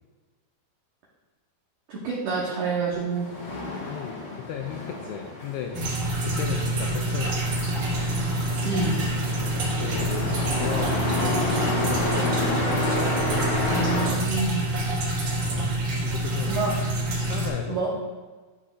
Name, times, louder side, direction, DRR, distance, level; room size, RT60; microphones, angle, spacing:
voice 1, 1.9-3.3 8.6-9.0 13.7-14.6 16.5-16.7 17.7-17.9, right 4 dB, 85° right, -5 dB, 1.8 m, -27 dB
Truck, 3.0-14.1, left 2 dB, 65° left, 1.3 m, -30 dB
voice 2, 3.9-5.8 6.2-7.8 9.4-11.5 11.7-12.6 15.4-15.7 16.1-16.6 17.2-17.8, left 8 dB, 85° left, 2 dB, 2.3 m, -35 dB
sound 1, 5.7-17.5, right 1 dB, 55° right, 2.7 m, -27 dB
12.5 x 4.9 x 2.4 m, 1.3 s
omnidirectional pair, 5.1 m